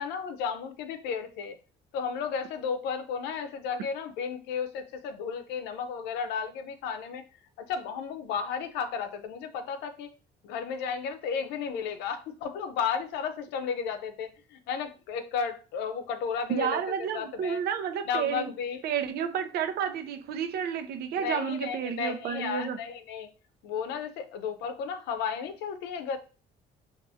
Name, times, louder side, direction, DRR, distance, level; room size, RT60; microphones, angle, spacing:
voice 1, 0.0-1.6 1.9-7.2 7.6-10.1 10.4-17.6 18.0-18.8 21.2-23.3 23.6-26.2, left 6 dB, 90° left, 0.6 m, -33 dB
voice 2, 16.5-18.5 18.8-22.8, right 8 dB, 70° right, 0.6 m, -31 dB
5.4 x 2.5 x 2.7 m
cardioid pair, 110°, 17 cm